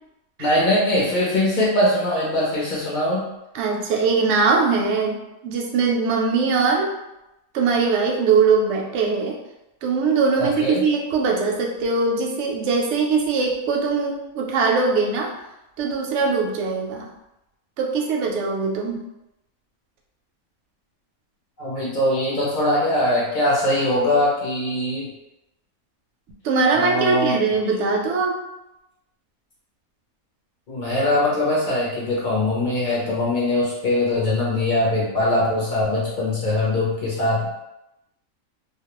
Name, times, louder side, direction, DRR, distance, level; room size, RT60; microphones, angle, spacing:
voice 1, 0.4-3.3 10.4-10.8 21.6-25.1 26.7-27.3 30.7-37.5, left 1 dB, 55° left, -6 dB, 0.5 m, -21 dB
voice 2, 3.5-5.2 5.4-6.9 7.5-9.3 9.8-15.3 15.8-17.1 17.8-19.0 26.4-28.4, right 4 dB, 65° right, 0 dB, 0.7 m, -21 dB
2.3 x 2.1 x 2.9 m, 0.91 s
omnidirectional pair, 1.5 m